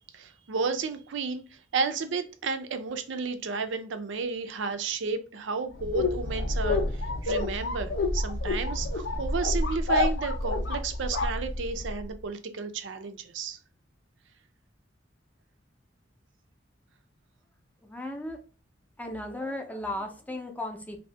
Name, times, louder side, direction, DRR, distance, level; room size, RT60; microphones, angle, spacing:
voice 1, 0.1-1.4 1.7-13.6, right 4 dB, 65° right, 0.5 m, -32 dB
sound 1, 5.8-12.0, left 2 dB, 80° left, 0.6 m, -28 dB
voice 2, 17.8-18.4 19.0-21.0, left 1 dB, 10° left, 0.6 m, -35 dB
2.8 x 2.6 x 3.3 m
head